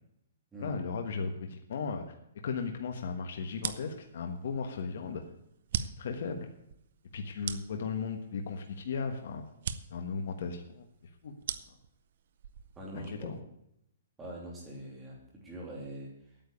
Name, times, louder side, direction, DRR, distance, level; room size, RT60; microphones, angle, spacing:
voice 1, 0.6-2.0 2.4-5.2 5.8-6.5 7.1-9.5 9.9-10.9 11.2-11.3 12.9-13.4, left 5 dB, 55° left, 5 dB, 1.3 m, -36 dB
sound 1, 3.5-13.4, right 7 dB, 50° right, 0.7 m, -42 dB
voice 2, 12.7-13.3 14.2-16.4, right 1 dB, 10° right, -3 dB, 3.0 m, -43 dB
9.2 x 8.9 x 8.5 m, 0.77 s
hypercardioid pair, 175°, 0 cm